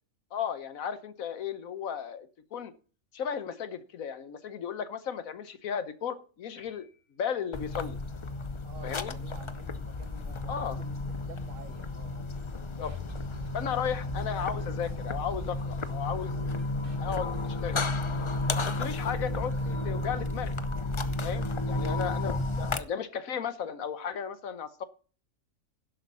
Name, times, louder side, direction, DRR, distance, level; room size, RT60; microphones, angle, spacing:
voice 1, 0.3-2.7 3.1-6.9 7.2-8.0 8.8-9.1 10.5-10.8 12.8-12.9 13.5-16.4 17.0-17.8 18.5-20.6 21.2-24.8, left 8 dB, 85° left, 1.4 m, -35 dB
sound 1, 6.6-7.8, left 2 dB, 55° right, 5.7 m, -61 dB
sound 2, 7.5-22.8, left 2 dB, 40° left, 0.4 m, -33 dB
voice 2, 8.6-11.0 11.2-12.7 14.0-14.1 21.8-22.0 22.5-22.9, right 4 dB, 70° right, 1.7 m, -51 dB
sound 3, 12.8-20.6 20.8-20.9 21.3-21.4, right 3 dB, 40° right, 2.2 m, -43 dB
11.0 x 7.9 x 5.5 m
omnidirectional pair, 1.4 m